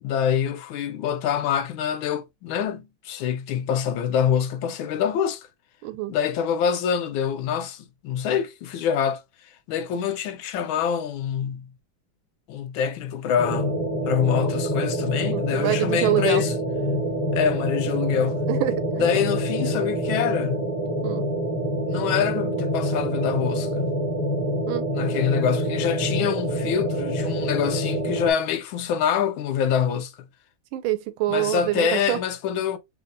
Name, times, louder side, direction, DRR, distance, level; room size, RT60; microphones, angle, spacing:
voice 1, 0.0-5.5 6.1-9.2 9.7-11.7 12.5-16.5 17.3-18.4 19.0-20.7 21.9-23.9 24.9-30.1 31.3-32.8, left 8 dB, 85° left, 1.4 m, -25 dB
voice 2, 5.8-6.1 15.3-16.4 18.5-19.1 21.0-21.2 24.7-24.9 30.7-32.2, right 15 dB, 90° right, 1.4 m, -26 dB
sound 1, 13.4-28.3, equal, 35° left, 0.6 m, -26 dB
5.3 x 2.2 x 2.5 m
omnidirectional pair, 2.2 m